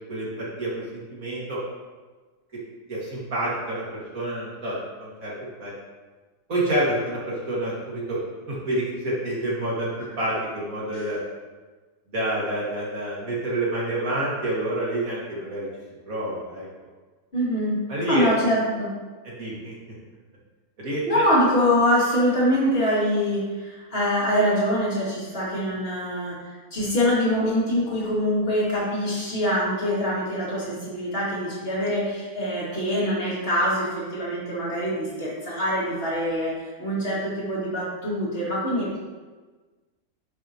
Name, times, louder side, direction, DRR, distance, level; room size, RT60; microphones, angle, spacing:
voice 1, 0.1-1.6 2.9-5.3 5.6-5.7 6.5-8.2 8.5-9.9 10.2-11.2 12.1-15.7 16.1-16.7 17.9-18.5 19.4-19.8 20.8-21.2, right 1 dB, 60° right, -6 dB, 2.6 m, -28 dB
voice 2, 17.3-17.8 18.1-18.9 21.1-36.5 36.8-39.0, equal, 35° left, -6 dB, 2.4 m, -24 dB
9.5 x 5.8 x 3.0 m, 1.3 s
omnidirectional pair, 1.7 m